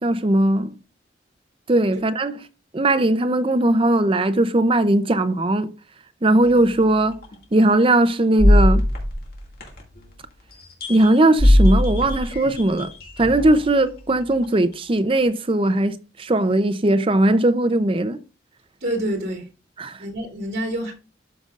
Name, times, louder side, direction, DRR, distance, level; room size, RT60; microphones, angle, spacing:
voice 1, 0.0-0.7 1.7-2.4 2.7-5.7 6.2-7.2 7.5-8.8 10.9-12.9 13.2-15.9 16.2-18.2 19.8-19.9, right 1 dB, 30° right, 0.6 m, -19 dB
sound 1, 6.4-6.5 7.2-7.3 8.4-10.1 10.5-13.6 14.4-14.5, left 1 dB, 55° left, 2.2 m, -19 dB
voice 2, 18.8-19.5 20.0-20.9, right 1 dB, 60° right, 2.9 m, -27 dB
12.5 x 5.3 x 2.5 m
head